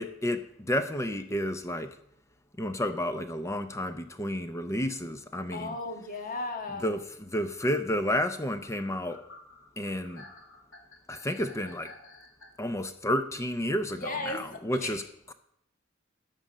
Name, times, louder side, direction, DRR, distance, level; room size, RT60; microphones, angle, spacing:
voice 1, 0.0-1.9 2.6-5.7 6.8-9.2 9.8-10.2 11.1-11.9 12.6-15.0, equal, 15° left, 9 dB, 0.6 m, -31 dB
sound 1, 5.3-5.4 6.8-6.9 7.6-12.5, left 2 dB, 85° left, 2.1 m, -51 dB
voice 2, 5.5-6.9 13.9-15.1, left 2 dB, 45° left, 4 dB, 1.7 m, -36 dB
13.0 x 5.3 x 7.3 m, 0.71 s
head